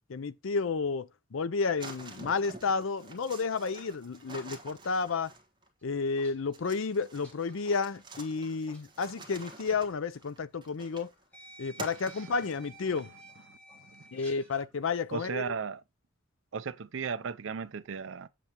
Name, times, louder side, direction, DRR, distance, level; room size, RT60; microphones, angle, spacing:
voice 1, 0.1-5.3 5.8-11.1 11.6-13.1 14.1-15.5, left 4 dB, 75° left, 0.5 m, -31 dB
sound 1, 1.8-5.7 6.5-11.2 11.8-12.8, right 2 dB, 20° right, 1.3 m, -47 dB
sound 2, 5.8-8.8 9.1-9.3 10.4-10.5 11.3-14.7, right 1 dB, 5° left, 2.2 m, -53 dB
voice 2, 12.0-12.3 13.5-14.1 15.1-15.8 16.5-18.3, right 6 dB, 65° right, 0.5 m, -37 dB
7.6 x 6.6 x 2.9 m
head